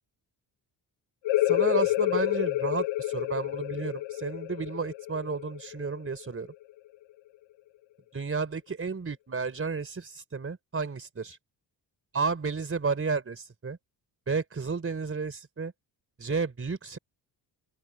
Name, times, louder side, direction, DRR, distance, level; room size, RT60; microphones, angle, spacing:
sound 1, 1.2-6.6, left 15 dB, 90° left, 0.9 m, -29 dB
voice 1, 1.4-6.5 8.1-11.4 12.1-13.8 14.3-15.7 16.2-17.0, right 4 dB, 30° right, 4.2 m, -32 dB
open air
cardioid pair, 85°, 43 cm